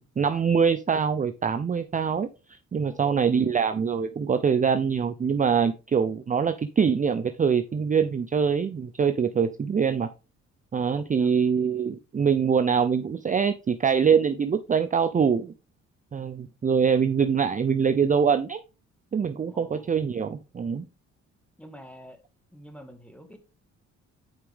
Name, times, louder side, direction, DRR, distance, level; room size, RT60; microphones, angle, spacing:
voice 1, 0.0-2.3 2.7-10.1 10.7-15.5 16.1-18.6 19.1-20.9, right 6 dB, 25° right, 0.5 m, -24 dB
voice 2, 2.8-3.4 11.0-11.4 19.5-19.9 21.6-22.2 22.5-23.4, equal, 5° left, 1.8 m, -47 dB
8.0 x 5.1 x 3.5 m
cardioid pair, 90°, 30 cm